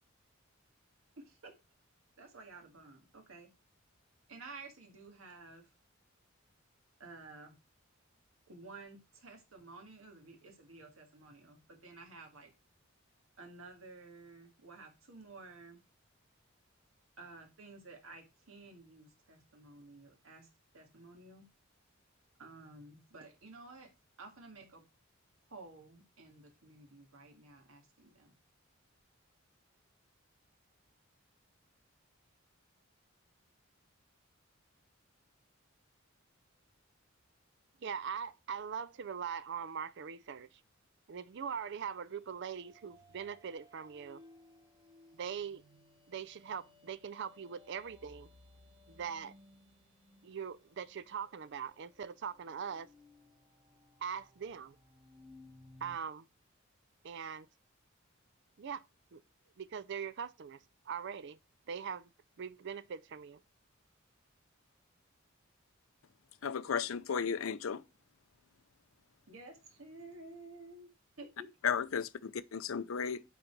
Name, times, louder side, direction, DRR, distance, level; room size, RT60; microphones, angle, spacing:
voice 1, 1.2-1.5 2.2-3.5 4.3-5.7 7.0-7.6 8.5-12.5 13.4-15.8 17.2-20.5 20.7-21.5 22.4-23.9 24.2-24.8 25.5-28.3 69.3-70.9 71.2-71.5, right 3 dB, 80° right, 1.8 m, -53 dB
voice 2, 37.8-40.6 41.1-44.2 45.1-45.6 46.1-48.3 48.9-49.3 50.2-52.9 54.0-54.8 55.8-56.3 57.0-57.5 58.6-58.8 59.1-59.2 59.6-60.6 60.9-61.4 61.7-62.1 62.4-63.4, right 7 dB, 60° right, 0.5 m, -41 dB
Poseidon Above, 42.1-56.0, left 2 dB, 25° right, 1.2 m, -61 dB
voice 3, 66.4-67.8 71.6-73.2, left 6 dB, 80° left, 0.5 m, -34 dB
9.3 x 3.9 x 4.5 m
head